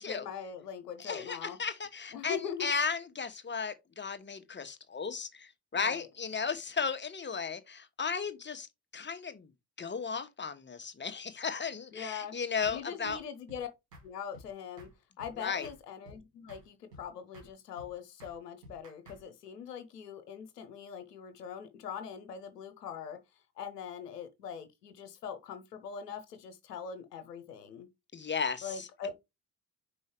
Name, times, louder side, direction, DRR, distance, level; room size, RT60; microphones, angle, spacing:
voice 1, 0.0-1.6 2.1-2.7 5.7-6.1 11.9-12.3 12.7-13.7 14.0-14.9 15.2-23.2 23.6-27.9 28.6-29.1, left 7 dB, 80° left, 0.9 m, -42 dB
voice 2, 1.0-8.7 8.9-9.5 9.8-13.2 15.4-15.7 28.1-28.9, left 5 dB, 25° left, 1.2 m, -35 dB
sound 1, 12.6-12.8 13.1-13.2 13.5-13.6 13.9-14.1 14.3-14.5 14.8-14.9 15.2-15.8 16.0-16.2 16.5-16.6 16.9-17.1 17.3-17.5 17.8-17.9 18.2-18.4 18.6-19.2, equal, 80° right, 2.1 m, -52 dB
5.4 x 4.9 x 4.9 m
figure-of-eight pair, 40°, 48 cm